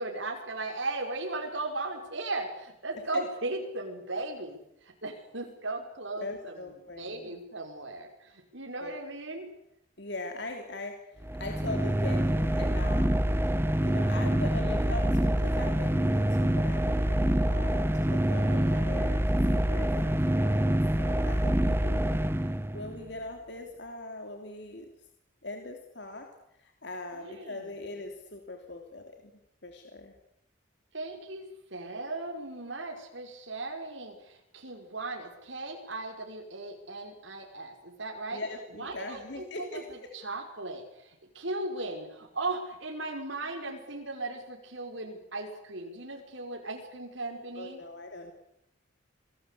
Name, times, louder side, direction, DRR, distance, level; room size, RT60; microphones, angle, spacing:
voice 1, 0.0-6.7 7.0-9.5 18.3-19.0 27.1-27.7 30.9-38.4 38.8-39.4 39.7-39.8 40.1-47.8, right 2 dB, 65° right, 1 dB, 5.5 m, -37 dB
voice 2, 6.2-7.4 8.8-9.0 10.0-13.2 13.8-19.2 19.5-24.9 25.4-26.3 26.6-29.3 29.6-30.1 38.3-39.8 47.5-48.3, left 2 dB, 55° left, 3 dB, 3.2 m, -41 dB
sound 1, 11.2-23.0, right 1 dB, 10° right, 0.9 m, -26 dB
27.5 x 20.0 x 8.5 m, 0.77 s
head